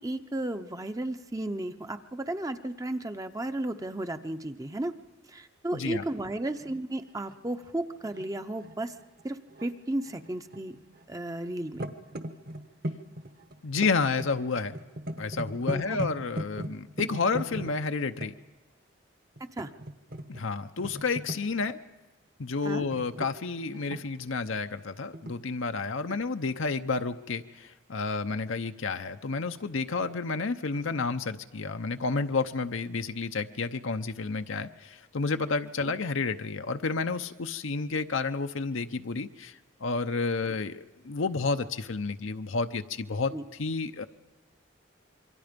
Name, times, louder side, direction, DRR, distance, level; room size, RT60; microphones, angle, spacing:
voice 1, 0.0-4.9 5.3-8.9 9.2-10.8 11.1-11.9 15.7-16.0 19.4-19.7 22.6-22.8 35.8-35.9 43.3-43.4, right 1 dB, 15° right, 8 dB, 0.7 m, -34 dB
voice 2, 5.7-6.0 13.6-14.8 15.2-18.3 20.3-21.8 22.4-43.3 43.6-44.1, left 4 dB, 75° left, 7 dB, 0.8 m, -30 dB
sound 1, 6.6-6.8 7.3-9.7 10.1-11.2 11.5-18.3 19.4-20.4 20.8-21.6 22.7-24.3 25.1-25.3, right 1 dB, 50° right, 1.3 m, -38 dB
27.0 x 23.5 x 5.2 m, 1.2 s
head